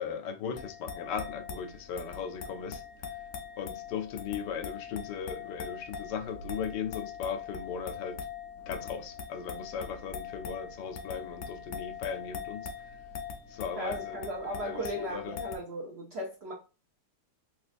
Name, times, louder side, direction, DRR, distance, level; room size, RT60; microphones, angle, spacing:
voice 1, 0.0-2.8 3.6-8.2 8.7-12.7 13.5-15.4, left 7 dB, 90° left, 1.2 m, -37 dB
sound 1, 0.6-15.6, left 6 dB, 65° left, 0.8 m, -42 dB
voice 2, 13.8-16.5, right 1 dB, 55° right, 0.7 m, -36 dB
3.3 x 3.0 x 2.5 m
omnidirectional pair, 1.8 m